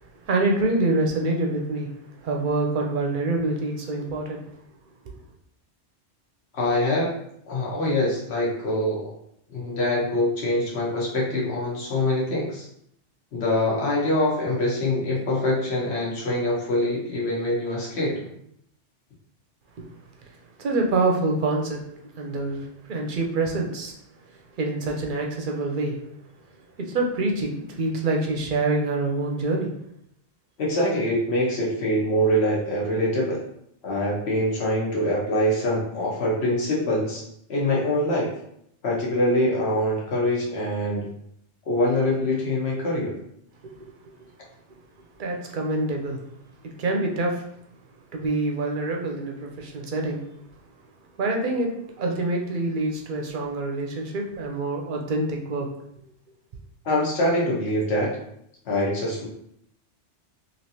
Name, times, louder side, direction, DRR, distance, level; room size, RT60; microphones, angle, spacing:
voice 1, 0.2-1.9 2.2-4.4 20.6-21.8 22.2-23.9 24.6-26.0 26.8-29.7 43.6-44.3 45.2-46.2 46.6-47.4 48.1-50.2 51.2-55.7, right 2 dB, 55° right, 1 dB, 0.6 m, -26 dB
voice 2, 6.5-7.1 7.5-9.1 9.5-12.6 13.3-18.3 30.6-33.4 33.8-37.2 37.5-38.3 38.8-41.0 41.7-43.1 56.8-58.2 58.6-59.3, left 1 dB, 65° left, -4 dB, 1.2 m, -24 dB
3.2 x 2.7 x 2.7 m, 0.73 s
omnidirectional pair, 1.2 m